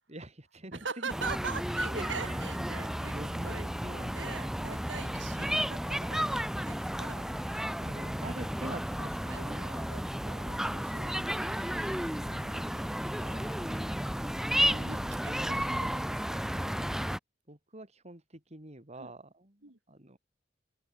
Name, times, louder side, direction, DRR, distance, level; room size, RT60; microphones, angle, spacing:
voice 1, 0.1-1.2 1.9-2.7 3.1-4.2 4.6-5.3 7.8-9.6 12.1-12.6 13.5-13.9 14.6-15.0 17.5-20.2, right 1 dB, 35° right, 4.3 m, -46 dB
voice 2, 0.8-3.1 3.4-7.4 9.3-10.0 10.3-12.6 13.1-13.6 14.5-16.0 16.3-16.4 19.0-19.1 19.6-19.8, right 5 dB, 75° right, 2.7 m, -43 dB
sound 1, 1.1-17.2, equal, 5° right, 1.2 m, -33 dB
open air
head